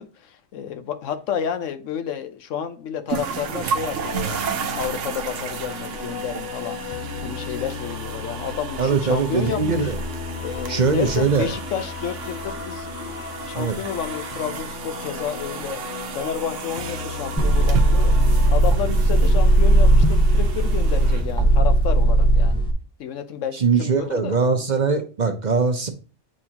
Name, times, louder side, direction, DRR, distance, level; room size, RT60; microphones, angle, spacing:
voice 1, 0.0-6.8 7.2-9.9 10.4-15.8 16.1-18.1 18.5-22.6 23.0-24.4, left 8 dB, 90° left, 1.1 m, -31 dB
sound 1, 3.1-22.0, right 6 dB, 80° right, 1.0 m, -33 dB
sound 2, 3.8-18.6, left 5 dB, 55° left, 0.7 m, -35 dB
voice 2, 8.8-10.0 10.7-11.5 13.5-13.8 23.5-25.9, right 5 dB, 45° right, 0.8 m, -21 dB
sound 3, 17.4-22.7, right 1 dB, 5° left, 0.7 m, -17 dB
8.6 x 3.8 x 2.9 m
omnidirectional pair, 1.3 m